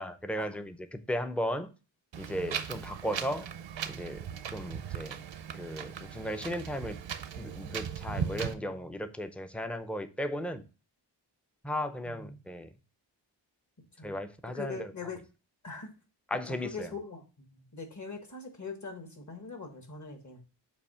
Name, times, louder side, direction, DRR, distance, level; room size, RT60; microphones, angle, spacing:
voice 1, 0.0-1.7 2.2-3.5 3.9-4.2 4.5-5.2 5.6-7.0 7.4-10.6 11.6-12.7 14.0-14.8 16.3-16.7, equal, 5° left, 0.5 m, -35 dB
Wind, 2.1-8.5, right 8 dB, 75° right, 0.7 m, -38 dB
voice 2, 8.1-9.1 12.0-12.4 14.0-14.2 14.4-15.2 15.6-15.9 16.4-20.4, left 3 dB, 40° left, 1.5 m, -42 dB
7.0 x 2.8 x 5.4 m
wide cardioid pair, 90°, 44 cm